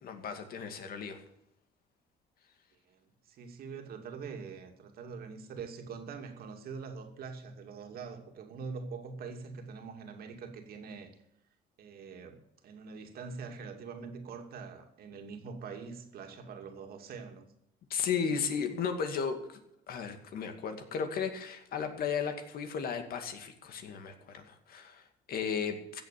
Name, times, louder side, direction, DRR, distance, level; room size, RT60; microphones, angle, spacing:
voice 1, 0.0-1.2 17.9-19.6 19.9-26.0, left 6 dB, 60° left, 2.3 m, -35 dB
voice 2, 2.9-11.1 11.8-17.5, right 5 dB, 65° right, 2.6 m, -44 dB
15.5 x 7.6 x 8.5 m
cardioid pair, 110°, 17 cm